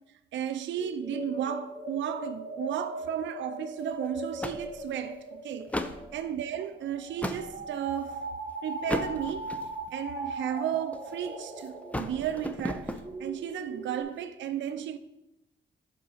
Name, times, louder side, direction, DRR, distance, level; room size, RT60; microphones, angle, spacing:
voice 1, 0.3-8.2 8.6-9.5 9.9-15.0, right 10 dB, 75° right, 0.5 m, -34 dB
sound 1, 0.7-14.0, right 1 dB, 50° right, 2.1 m, -39 dB
sound 2, 3.8-4.0 4.4-5.1 5.6-6.1 6.7-7.5 8.1-8.3 8.8-9.9 10.6-11.3 11.6-13.1, left 1 dB, 5° left, 0.6 m, -35 dB
8.5 x 4.1 x 5.5 m
cardioid pair, 100°, 19 cm